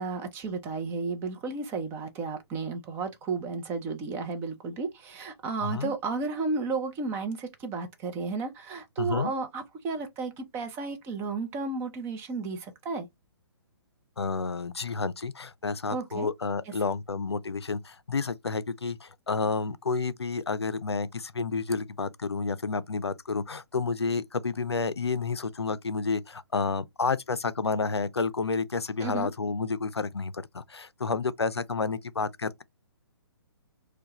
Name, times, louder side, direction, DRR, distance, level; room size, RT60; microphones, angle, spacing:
voice 1, 0.0-13.1 15.9-16.3 29.0-29.3, right 4 dB, 15° right, 0.6 m, -33 dB
voice 2, 5.6-5.9 9.0-9.3 14.2-32.6, left 4 dB, 80° left, 0.4 m, -30 dB
4.5 x 2.2 x 2.9 m
figure-of-eight pair, 130°, 14 cm